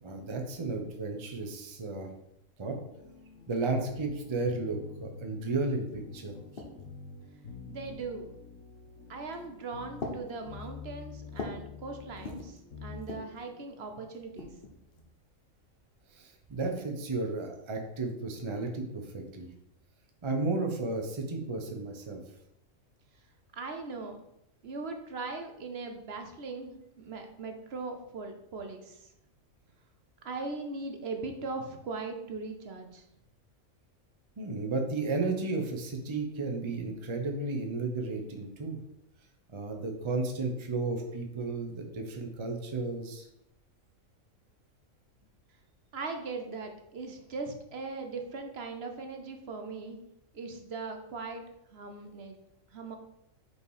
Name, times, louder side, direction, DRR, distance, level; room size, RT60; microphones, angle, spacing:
voice 1, 0.0-2.1 2.6-2.8 3.5-6.3 16.1-19.5 20.2-22.2 34.4-38.8 39.5-43.3, right 3 dB, 25° right, 3 dB, 0.7 m, -33 dB
sound 1, 2.8-13.8, left 4 dB, 70° left, 1.4 m, -47 dB
sound 2, 5.9-7.0 7.8-8.3 9.2-9.5 10.0-11.7 12.0-12.6 13.0-13.4 14.1-15.1, left 3 dB, 45° left, 1.3 m, -43 dB
voice 2, 7.7-8.3 9.1-14.5 23.5-24.2 24.6-29.1 30.2-33.0 45.9-50.0 50.3-51.4 51.7-52.3 52.7-53.0, right 3 dB, 55° right, 4 dB, 1.0 m, -39 dB
5.6 x 4.7 x 4.8 m, 0.82 s
omnidirectional pair, 1.4 m